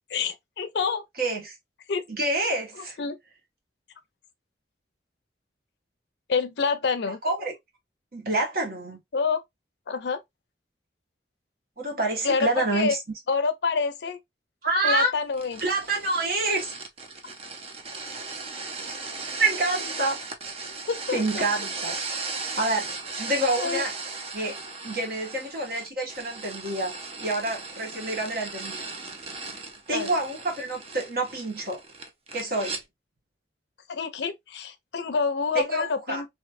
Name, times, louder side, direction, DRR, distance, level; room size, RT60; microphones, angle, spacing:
voice 1, 0.1-1.0 1.9-2.0 3.0-3.2 6.3-7.2 9.1-9.4 9.9-10.2 12.2-13.0 13.3-14.2 14.8-15.6 20.9-21.2 23.6-23.8 29.9-30.1 33.9-36.3, left 5 dB, 75° left, 0.5 m, -27 dB
voice 2, 1.2-1.5 2.1-3.0 7.2-7.5 8.1-9.0 11.8-13.0 14.6-15.1 15.6-16.7 19.4-20.2 21.1-22.0 22.6-23.9 24.3-24.5 24.8-28.8 29.9-31.8 32.3-32.8 35.5-36.2, right 2 dB, 55° right, 1.3 m, -27 dB
sound 1, 15.3-32.8, right 4 dB, 35° right, 0.6 m, -37 dB
3.2 x 3.0 x 2.4 m
head